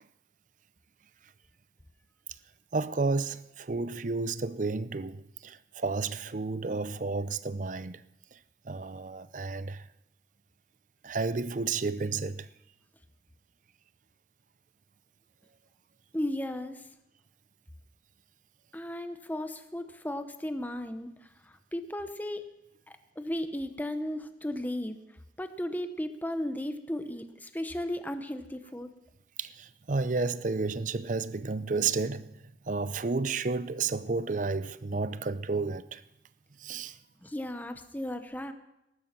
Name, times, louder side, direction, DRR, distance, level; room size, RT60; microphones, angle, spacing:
voice 1, 2.7-8.0 8.3-8.4 8.6-9.9 11.0-12.5 29.4-32.3 32.7-36.0 36.6-37.0, right 4 dB, 45° right, 0.6 m, -31 dB
voice 2, 16.1-16.8 18.7-22.4 22.9-25.0 25.4-28.9 37.2-38.5, left 1 dB, 10° left, 0.9 m, -35 dB
19.5 x 11.5 x 5.9 m
head